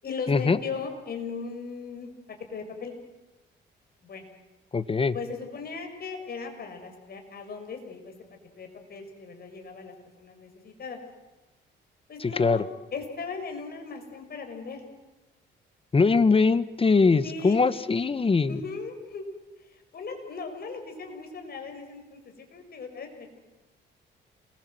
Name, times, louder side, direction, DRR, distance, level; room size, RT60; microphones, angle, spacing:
voice 1, 0.0-2.1 2.5-2.9 4.0-4.2 5.1-8.1 8.6-11.0 12.1-12.6 12.9-14.8 17.2-17.6 18.5-19.2 19.7-23.4, left 5 dB, 50° left, 5 dB, 6.3 m, -38 dB
voice 2, 4.7-5.1 12.2-12.6 15.9-18.6, left 4 dB, 25° left, 14 dB, 1.4 m, -22 dB
28.0 x 21.5 x 7.9 m, 1.1 s
cardioid pair, 90°, 20 cm